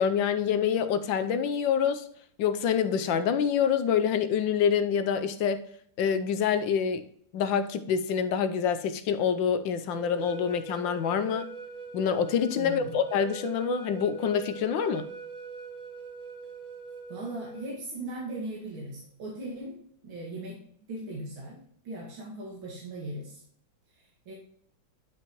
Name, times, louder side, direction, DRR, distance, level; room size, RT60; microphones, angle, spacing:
voice 1, 0.0-2.1 2.4-5.6 6.0-7.0 7.3-11.5 11.9-15.1, left 7 dB, 75° left, 10 dB, 1.4 m, -26 dB
sound 1, 9.9-17.7, right 5 dB, 5° left, 2.6 m, -42 dB
voice 2, 17.1-19.8 20.0-20.6 20.9-21.6 21.8-23.4 24.0-24.3, right 2 dB, 80° right, -4 dB, 2.8 m, -38 dB
10.5 x 6.1 x 3.0 m, 0.64 s
omnidirectional pair, 2.2 m